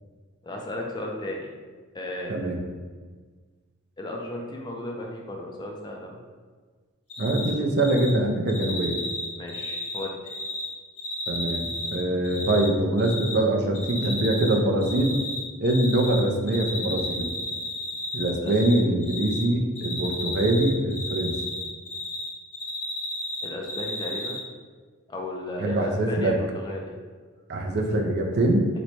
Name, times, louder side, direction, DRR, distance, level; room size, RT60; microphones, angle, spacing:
voice 1, 0.4-1.5 1.9-2.4 4.0-6.2 9.4-10.3 18.4-18.5 23.4-24.4 25.1-26.9, left 1 dB, 20° left, 0 dB, 0.3 m, -35 dB
Cricket, 7.1-7.5 7.8-8.1 8.5-10.7 11.0-12.7 13.0-13.3 13.7-14.5 14.8-16.2 16.5-18.8 19.0-19.4 19.8-22.3 22.5-24.4, left 2 dB, 85° left, 1.2 m, -32 dB
voice 2, 7.2-9.0 11.3-15.1 15.6-17.3 18.1-21.3 25.6-26.4 27.5-28.7, right 1 dB, 50° right, 2 dB, 0.4 m, -23 dB
3.0 x 2.1 x 4.1 m, 1.5 s
head